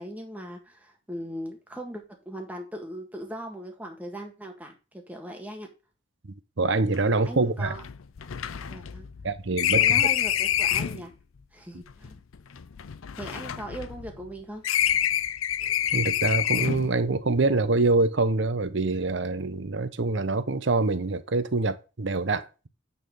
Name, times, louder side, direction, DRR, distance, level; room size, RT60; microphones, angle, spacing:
voice 1, 0.0-5.7 7.3-7.8 8.6-9.1 9.7-11.1 11.5-12.2 13.2-14.7, equal, 5° right, 1.6 m, -39 dB
voice 2, 6.6-7.7 9.2-9.8 15.9-22.7, right 3 dB, 55° right, 0.7 m, -25 dB
sound 1, 6.9-7.0 7.3-7.4 7.7-11.0 11.9-14.3 14.6-17.0, left 11 dB, 75° left, 0.5 m, -27 dB
9.3 x 4.2 x 5.4 m
head